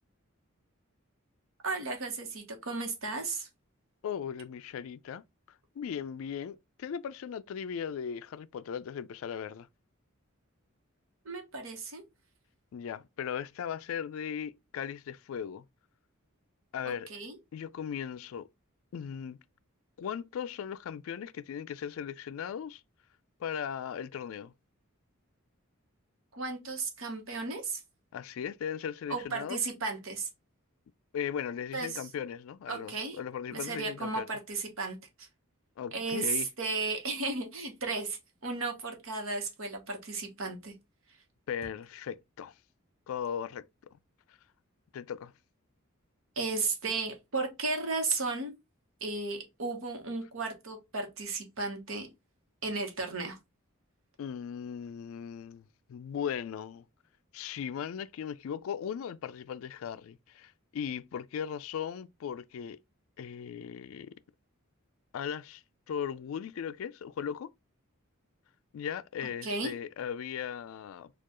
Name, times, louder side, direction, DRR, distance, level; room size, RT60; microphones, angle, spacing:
voice 1, 1.6-3.5 11.2-12.0 16.8-17.4 26.3-27.8 29.1-30.3 31.7-32.1 32.7-33.2 33.5-35.3 35.9-40.7 46.4-48.5 49.0-52.1 52.6-53.4 69.4-69.8, right 3 dB, 70° right, 1.1 m, -34 dB
voice 2, 4.0-5.2 5.8-9.7 12.7-15.6 16.7-17.1 17.5-18.5 18.9-19.4 20.0-22.8 23.4-24.5 28.1-29.6 31.1-34.4 35.8-36.5 41.5-42.5 43.1-43.6 44.9-45.3 54.2-56.8 57.3-62.8 63.2-64.1 65.1-67.5 68.7-71.1, left 8 dB, 70° left, 0.3 m, -38 dB
4.3 x 2.4 x 2.9 m
head